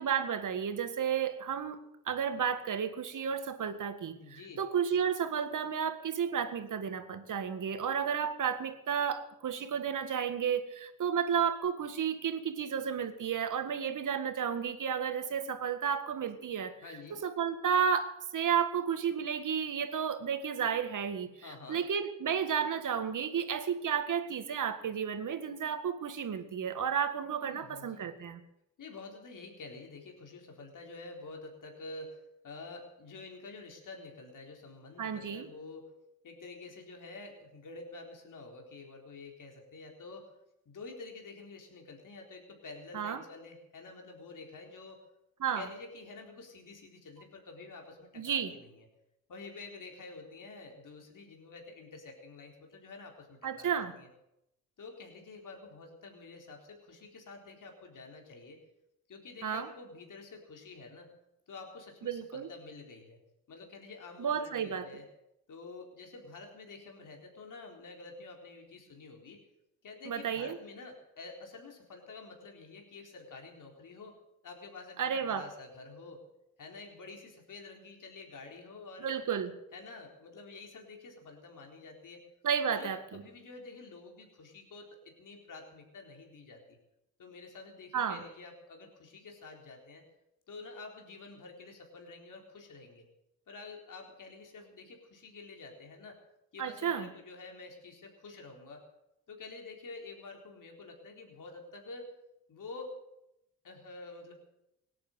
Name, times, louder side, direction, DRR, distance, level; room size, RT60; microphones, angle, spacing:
voice 1, 0.0-1.8 2.1-16.8 17.1-28.4 35.0-35.5 42.9-43.2 45.4-45.7 48.2-48.5 53.4-53.9 59.4-59.7 62.0-62.5 64.2-64.9 70.1-70.6 75.0-75.5 79.0-79.5 82.4-83.0 87.9-88.2 96.6-97.1, right 7 dB, 55° right, 9 dB, 1.8 m, -32 dB
voice 2, 4.2-4.6 16.8-17.2 21.4-21.8 27.4-28.1 28.8-35.9 36.2-40.3 40.7-45.0 45.6-48.9 49.3-54.1 54.8-58.6 59.1-61.1 61.5-63.2 63.5-65.1 65.5-69.4 69.8-74.2 74.4-76.2 76.6-79.3 79.7-82.2 82.7-86.8 87.2-90.0 90.5-93.1 93.5-96.2 96.5-98.8 99.3-102.1 102.5-102.9 103.6-104.3, left 3 dB, 55° left, 2 dB, 4.0 m, -48 dB
17.5 x 9.8 x 7.9 m, 0.85 s
hypercardioid pair, 50°, 37 cm